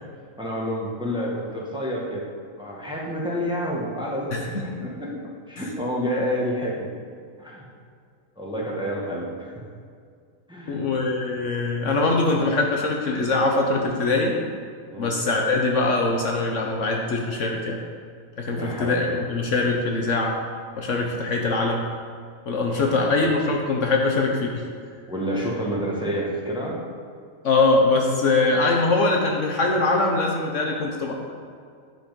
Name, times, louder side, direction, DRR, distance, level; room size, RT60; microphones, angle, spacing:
voice 1, 0.4-2.2 2.6-5.1 5.5-6.9 7.4-7.6 8.4-9.5 10.5-10.8 14.9-15.1 18.5-19.2 22.7-23.1 25.1-26.8, equal, 5° right, -4 dB, 1.5 m, -29 dB
voice 2, 4.3-4.6 10.7-14.4 15.0-17.8 18.4-20.4 20.8-21.9 22.5-24.7 27.4-31.1, left 3 dB, 60° left, 1 dB, 1.2 m, -22 dB
9.9 x 6.1 x 5.2 m, 2.2 s
omnidirectional pair, 1.5 m